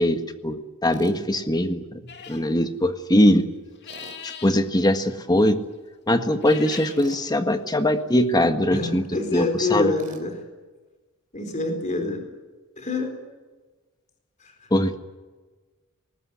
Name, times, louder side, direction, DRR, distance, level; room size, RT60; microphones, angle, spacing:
voice 1, 0.0-3.5 4.2-5.6 6.1-9.0 9.3-9.9 14.7-15.0, left 1 dB, 20° left, 8 dB, 1.6 m, -21 dB
Tools, 0.9-1.2 3.9-4.2 7.0-7.2 10.0-10.3, right 2 dB, 40° right, 3.8 m, -43 dB
sound 1, 2.1-2.5 3.7-4.6 6.3-7.0, left 7 dB, 50° left, 2.6 m, -39 dB
voice 2, 8.7-10.4 11.3-12.2 12.8-13.2 14.4-14.7, left 3 dB, 35° left, 4 dB, 4.3 m, -27 dB
20.5 x 19.5 x 9.8 m, 1.3 s
head